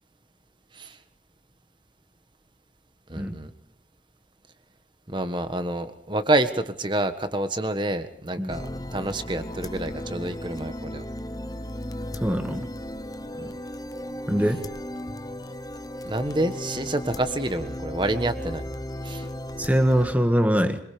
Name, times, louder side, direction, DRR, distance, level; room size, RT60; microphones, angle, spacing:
voice 1, 3.1-3.5 5.1-11.1 13.3-13.5 16.0-18.7 19.0-19.2, right 1 dB, 25° right, 9 dB, 1.5 m, -28 dB
sound 1, 8.5-20.1, left 1 dB, 20° left, 0.8 m, -35 dB
voice 2, 12.2-12.7 14.3-14.6 19.6-20.8, equal, 10° right, 7 dB, 1.6 m, -22 dB
25.5 x 23.5 x 5.2 m, 0.70 s
head